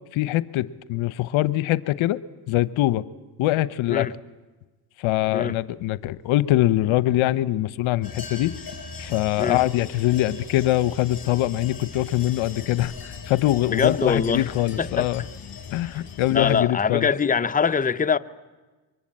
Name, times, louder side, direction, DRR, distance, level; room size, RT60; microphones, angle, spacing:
voice 1, 0.1-2.2 2.5-3.0 3.4-4.1 5.0-8.5 9.0-15.2 15.7-17.1, left 15 dB, 75° left, 0.9 m, -23 dB
sound 1, 8.0-16.6, left 5 dB, 45° left, 6.4 m, -39 dB
voice 2, 13.7-14.5 14.8-15.1 15.8-16.0 16.3-18.2, left 6 dB, 15° left, 0.8 m, -23 dB
23.5 x 21.0 x 8.7 m
supercardioid pair, 70°, 49 cm